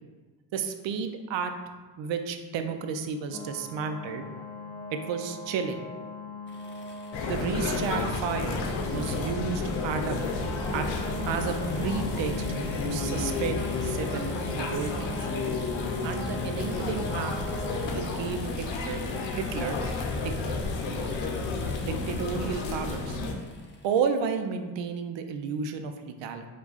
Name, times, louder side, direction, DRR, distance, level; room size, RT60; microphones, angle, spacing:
voice 1, 0.5-1.5 2.0-4.3 4.9-5.9 7.3-8.7 8.9-10.2 10.7-10.9 11.3-12.5 12.8-15.1 16.0-17.4 17.9-19.0 19.3-19.8 20.2-20.3 21.8-23.2 23.8-26.5, right 6 dB, 75° right, 7 dB, 0.6 m, -32 dB
sound 1, 3.3-17.9, left 1 dB, 10° left, 0.3 m, -41 dB
sound 2, 6.5-24.2, left 2 dB, 25° left, 0.8 m, -47 dB
sound 3, 7.1-23.3, left 3 dB, 75° left, 0.7 m, -31 dB
4.6 x 2.4 x 3.9 m, 1.3 s
supercardioid pair, 55°, 46 cm